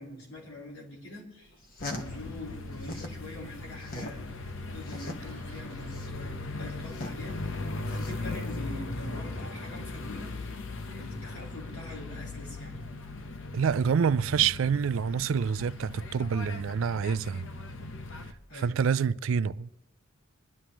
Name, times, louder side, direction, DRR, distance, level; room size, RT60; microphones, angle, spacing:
voice 1, 0.0-1.5 1.8-4.2 4.7-7.6 7.9-10.3 10.9-12.8 18.5-18.7, left 1 dB, 80° left, 3.9 m, -44 dB
sound 1, 1.5-3.2 3.6-8.6, left 2 dB, 45° left, 1.3 m, -41 dB
sound 2, 1.8-18.3, left 2 dB, 65° left, 0.8 m, -39 dB
voice 2, 13.5-17.5 18.5-19.7, right 6 dB, 65° right, 0.4 m, -27 dB
26.0 x 11.5 x 3.0 m
head